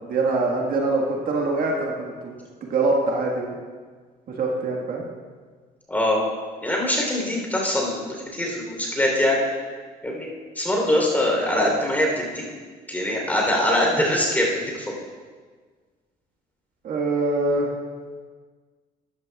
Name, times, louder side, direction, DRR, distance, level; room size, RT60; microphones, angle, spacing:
voice 1, 0.0-2.4 2.6-3.6 4.3-5.0 16.8-17.7, right 3 dB, 60° right, -1 dB, 1.6 m, -24 dB
voice 2, 5.9-6.2 6.6-9.5 10.0-10.3 10.5-12.4 12.9-15.0, left 1 dB, 10° left, -1 dB, 3.4 m, -23 dB
13.5 x 11.0 x 2.4 m, 1.5 s
cardioid pair, 110°, 17 cm